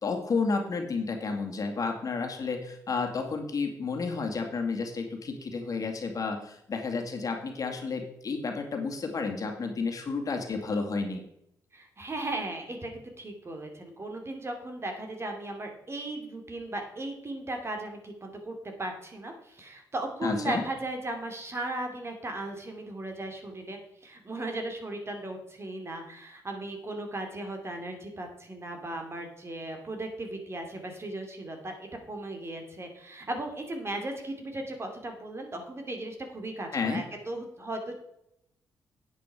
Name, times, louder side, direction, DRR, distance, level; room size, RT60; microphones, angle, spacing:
voice 1, 0.0-11.3 20.2-20.6 36.7-37.1, left 4 dB, 50° left, 3 dB, 2.2 m, -31 dB
voice 2, 11.7-38.0, right 2 dB, 35° right, 4 dB, 2.8 m, -37 dB
9.6 x 8.5 x 4.9 m, 0.79 s
supercardioid pair, 60°, 8 cm